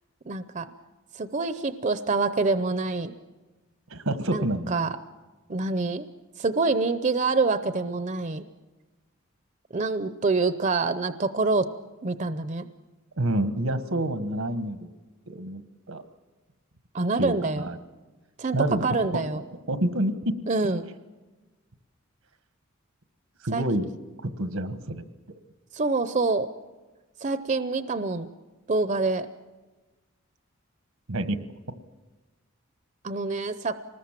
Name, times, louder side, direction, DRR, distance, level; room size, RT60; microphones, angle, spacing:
voice 1, 0.3-0.7 1.1-3.1 4.3-5.0 5.5-6.1 6.4-8.5 9.7-11.7 12.0-12.7 16.9-17.7 18.4-19.4 20.5-20.9 23.5-23.6 25.7-26.5 27.2-28.3 28.7-29.3 33.0-33.8, right 3 dB, 35° right, 12 dB, 0.6 m, -26 dB
voice 2, 3.9-4.7 13.2-14.9 15.3-15.6 15.9-16.0 17.2-17.8 18.5-18.9 19.7-20.3 23.4-23.9 24.2-25.0 31.1-31.4, right 1 dB, 85° right, 11 dB, 1.4 m, -27 dB
25.0 x 20.0 x 7.5 m, 1.2 s
head